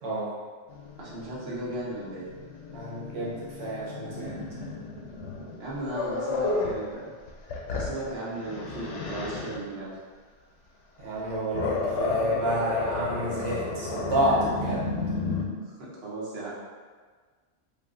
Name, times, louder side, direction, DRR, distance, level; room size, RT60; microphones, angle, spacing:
Growling, 0.7-6.8 7.3-9.6 11.0-15.5, left 3 dB, 85° left, 0.9 m, -33 dB
voice 1, 1.0-2.3 5.6-7.1 7.7-9.9 15.8-16.5, right 1 dB, 60° right, -7 dB, 1.0 m, -36 dB
voice 2, 2.7-4.3 11.0-14.9, right 1 dB, 85° right, -6 dB, 1.1 m, -29 dB
2.5 x 2.4 x 3.6 m, 1.5 s
omnidirectional pair, 1.2 m